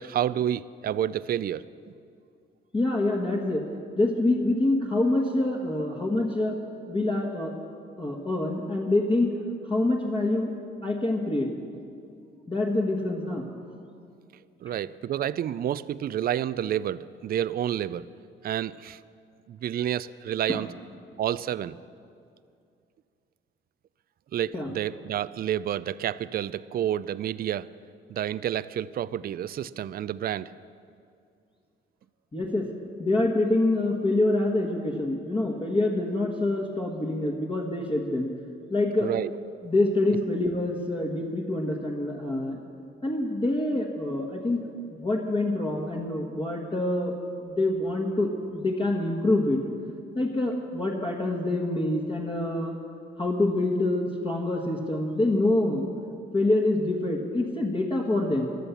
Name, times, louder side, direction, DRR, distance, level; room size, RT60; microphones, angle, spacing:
voice 1, 0.0-1.7 14.6-18.1 18.4-19.0 19.5-20.7 21.2-21.8 24.3-27.7 28.1-30.5 39.0-39.3, right 10 dB, 50° right, 17 dB, 0.4 m, -29 dB
voice 2, 2.7-3.6 3.9-6.5 6.9-7.5 8.0-9.3 9.6-10.5 10.8-11.5 12.5-13.5 20.5-20.6 24.5-24.7 32.3-32.7 33.0-38.3 38.7-39.1 39.6-42.6 43.0-44.6 45.0-47.1 47.4-49.6 50.1-52.8 53.2-55.9 56.3-58.5, left 2 dB, 25° left, -2 dB, 1.6 m, -26 dB
14.5 x 11.0 x 7.0 m, 2.4 s
cardioid pair, 90°, 20 cm